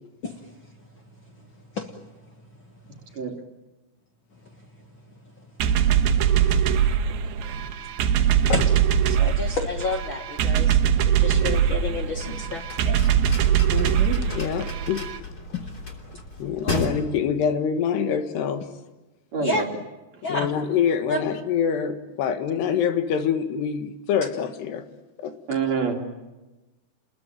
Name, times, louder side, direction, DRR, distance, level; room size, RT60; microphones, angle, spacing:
voice 1, 0.2-0.5 1.7-1.9 6.0-6.1 7.4-7.5 8.5-8.8 9.1-13.0 15.5-15.7 16.6-16.8 19.4-19.6 20.2-20.5 21.1-21.2, left 3 dB, 65° left, 4 dB, 1.2 m, -30 dB
sound 1, 5.6-15.2, right 9 dB, 70° right, 2.8 m, -22 dB
sound 2, 11.9-16.9, left 2 dB, 25° left, 3.2 m, -34 dB
voice 2, 13.7-14.2 19.3-19.6 25.5-26.2, right 5 dB, 45° right, 2 dB, 3.4 m, -27 dB
voice 3, 14.3-15.0 16.4-18.6 20.3-24.8 25.2-25.3, left 7 dB, 85° left, 8 dB, 3.8 m, -25 dB
29.5 x 21.0 x 9.2 m, 1.1 s
omnidirectional pair, 4.7 m